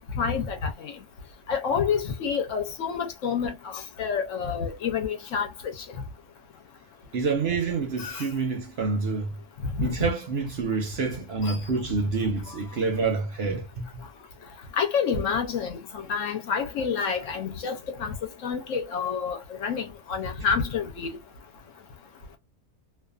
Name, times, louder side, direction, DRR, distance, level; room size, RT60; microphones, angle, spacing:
voice 1, 0.1-0.9 1.5-5.5 8.0-8.2 9.8-10.1 11.4-11.6 14.8-18.2 18.4-21.1, left 6 dB, 65° left, 1.0 m, -28 dB
voice 2, 7.1-9.3 9.8-13.9, right 4 dB, 55° right, 0.8 m, -27 dB
2.5 x 2.4 x 2.3 m
omnidirectional pair, 1.5 m